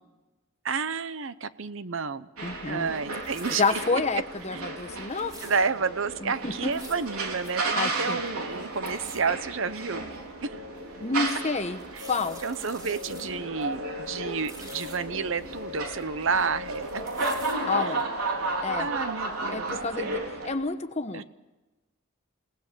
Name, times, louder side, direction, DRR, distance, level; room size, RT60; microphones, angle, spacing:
voice 1, 0.6-2.3 2.7-4.0 4.5-4.8 5.4-10.0 10.4-10.6 11.9-12.0 12.4-17.0 17.8-17.9 18.8-20.1 21.1-21.2, right 5 dB, 60° right, 14 dB, 0.8 m, -30 dB
voice 2, 2.4-2.9 3.6-5.5 6.2-6.7 7.8-8.2 11.0-11.8 12.1-12.4 17.7-18.0 18.6-18.9 19.5-20.2 20.4-21.2, left 4 dB, 30° left, 10 dB, 1.1 m, -29 dB
sound 1, 2.4-20.5, right 2 dB, 85° right, 3.8 m, -33 dB
sound 2, 2.9-3.9 4.4-4.5 4.8-5.6 6.5-7.1 7.4-7.5 7.8-7.9 8.2-8.6 8.9-9.2 9.8-9.9 10.4-10.5 11.7-13.3 13.6-13.7 14.1-15.0 15.5-16.4 16.7-17.6 18.0-18.1, right 1 dB, 15° right, 3.6 m, -47 dB
28.5 x 18.0 x 6.9 m, 1.1 s
head